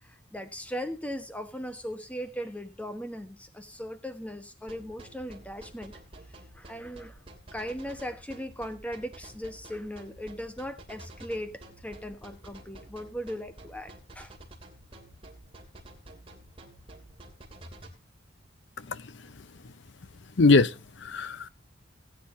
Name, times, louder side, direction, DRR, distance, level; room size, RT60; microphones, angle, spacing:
voice 1, 0.0-5.9 6.5-7.2 7.5-14.3, equal, 5° left, 1.2 m, -38 dB
sound 1, 4.7-17.9, right 1 dB, 30° right, 2.9 m, -49 dB
voice 2, 18.8-19.1 20.4-21.5, left 3 dB, 65° left, 0.7 m, -23 dB
19.0 x 9.5 x 2.8 m
head